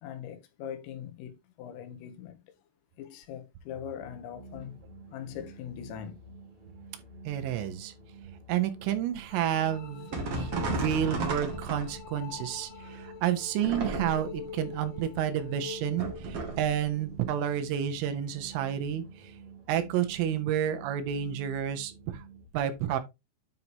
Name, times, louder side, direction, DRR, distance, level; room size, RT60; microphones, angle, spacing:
voice 1, 0.0-2.4 3.0-4.8 5.1-6.2, left 9 dB, 85° left, 3.8 m, -41 dB
sound 1, 4.0-22.5, right 4 dB, 25° right, 1.3 m, -50 dB
voice 2, 7.3-7.9 8.5-19.0 19.7-22.2 22.5-23.0, right 10 dB, 80° right, 3.5 m, -30 dB
sound 2, 9.3-16.3, left 9 dB, 60° left, 2.2 m, -45 dB
sound 3, 10.1-12.2 13.6-14.4 16.0-16.7, right 3 dB, 50° right, 1.8 m, -33 dB
9.4 x 5.7 x 2.9 m
omnidirectional pair, 5.9 m